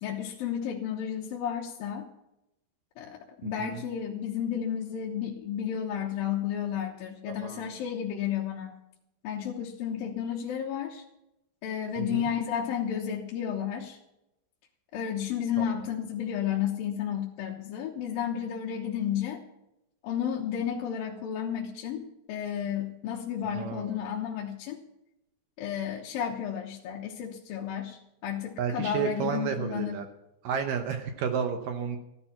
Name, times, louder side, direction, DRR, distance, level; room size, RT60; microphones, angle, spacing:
voice 1, 0.0-2.1 3.0-8.7 9.2-11.0 11.6-14.0 14.9-19.4 20.0-24.8 25.6-30.0, left 9 dB, 75° left, -2 dB, 2.9 m, -32 dB
voice 2, 3.4-3.8 7.3-7.7 12.0-12.3 15.6-15.8 23.5-24.0 28.6-30.1 30.4-32.0, right 7 dB, 75° right, 6 dB, 2.4 m, -32 dB
14.5 x 12.0 x 5.8 m, 0.88 s
omnidirectional pair, 4.3 m